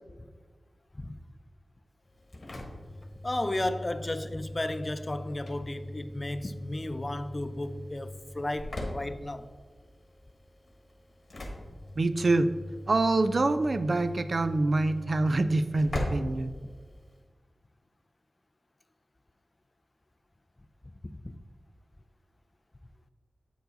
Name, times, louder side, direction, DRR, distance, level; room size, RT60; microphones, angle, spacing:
Engine / Slam, 2.1-17.2, left 1 dB, 45° left, 1.2 m, -40 dB
voice 1, 3.2-9.5 21.1-21.4, left 1 dB, 25° left, 0.3 m, -34 dB
voice 2, 12.0-12.5 12.9-16.5, right 2 dB, 50° right, 0.3 m, -25 dB
8.1 x 4.6 x 3.9 m
wide cardioid pair, 95°, 0 cm